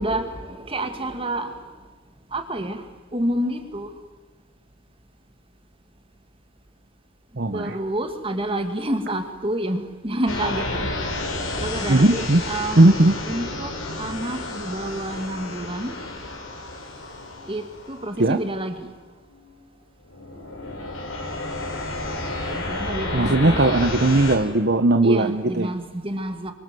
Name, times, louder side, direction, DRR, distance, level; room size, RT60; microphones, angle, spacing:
voice 1, 0.0-1.7 2.3-3.9 7.5-11.0 11.6-12.9 13.3-16.0 17.5-18.9 22.5-23.7 25.0-26.5, right 1 dB, 25° right, 7 dB, 2.4 m, -29 dB
voice 2, 7.4-7.7 11.9-12.4 12.8-13.2 18.2-18.4 23.1-25.7, right 2 dB, 55° right, 7 dB, 1.1 m, -18 dB
sound 1, 10.3-18.6 19.3-19.5 20.0-24.4, left 2 dB, 80° left, 5.5 m, -31 dB
29.0 x 25.0 x 7.8 m, 1.3 s
head